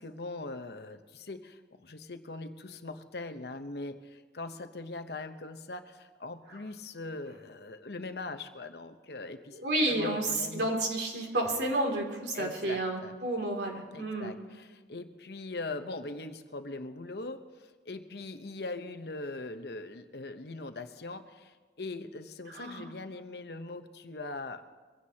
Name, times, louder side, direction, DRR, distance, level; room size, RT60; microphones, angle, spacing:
voice 1, 0.0-10.7 12.3-13.2 13.9-24.6, left 2 dB, 65° left, 8 dB, 0.9 m, -41 dB
voice 2, 9.5-14.3 22.5-22.9, right 1 dB, 75° right, 0 dB, 2.8 m, -31 dB
23.5 x 16.0 x 2.9 m, 1.4 s
head